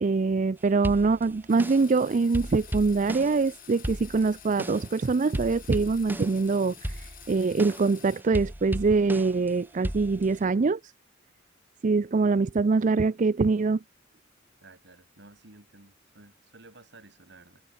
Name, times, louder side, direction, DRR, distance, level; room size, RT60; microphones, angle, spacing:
voice 1, 0.0-10.8 11.8-13.8, right 4 dB, 40° right, 0.4 m, -24 dB
sound 1, 0.8-2.0 2.3-5.0 5.3-6.5 6.8-9.5 9.8-10.4, equal, 10° right, 1.4 m, -36 dB
sound 2, 1.5-8.2, left 11 dB, 45° left, 3.2 m, -50 dB
voice 2, 14.6-17.6, right 2 dB, 60° right, 4.0 m, -53 dB
head